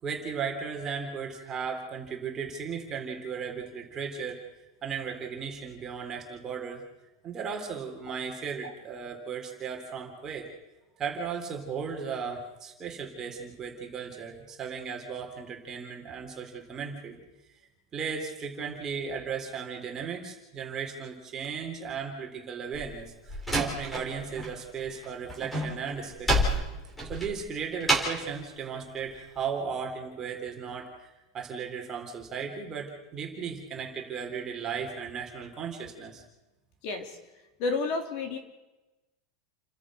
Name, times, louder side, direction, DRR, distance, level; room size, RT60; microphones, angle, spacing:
voice 1, 0.0-4.4 4.8-6.8 7.2-10.5 11.0-17.2 17.9-26.5 27.1-36.2, right 6 dB, 20° right, 2 dB, 3.9 m, -36 dB
Slam, 22.7-24.5 24.8-28.3, right 1 dB, ahead, 4.1 m, -29 dB
voice 2, 36.8-37.2 37.6-38.4, left 3 dB, 40° left, 5 dB, 3.5 m, -30 dB
30.0 x 13.5 x 6.5 m, 1.0 s
supercardioid pair, 165°, 3 cm